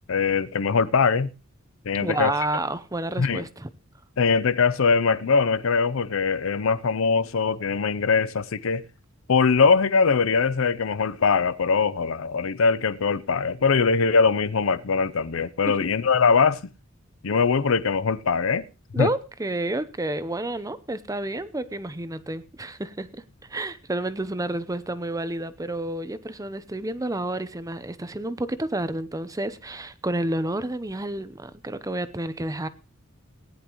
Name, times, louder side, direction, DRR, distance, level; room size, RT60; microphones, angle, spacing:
voice 1, 0.1-1.3 1.9-2.3 3.2-3.4 4.2-8.8 9.3-16.6 17.2-18.6 19.0-19.1, left 5 dB, 70° left, 0.6 m, -22 dB
voice 2, 2.0-3.7 15.7-15.8 18.9-23.2 23.5-32.7, right 1 dB, 15° right, 0.7 m, -30 dB
18.5 x 10.0 x 3.1 m
head